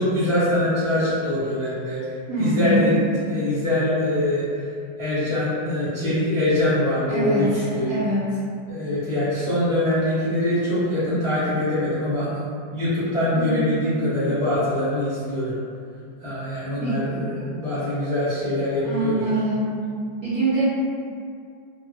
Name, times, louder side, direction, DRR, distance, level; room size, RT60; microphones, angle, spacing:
voice 1, 0.0-3.0 3.3-4.5 5.0-8.0 8.7-12.3 12.7-15.5 16.2-19.4, left 1 dB, 20° left, -14 dB, 0.5 m, -23 dB
voice 2, 2.3-2.9 7.1-7.5 7.9-8.4 13.3-13.8 16.8-17.2 18.8-19.7 20.2-20.6, right 2 dB, 60° right, -14 dB, 0.9 m, -24 dB
3.4 x 2.0 x 2.5 m, 2.4 s
omnidirectional pair, 2.3 m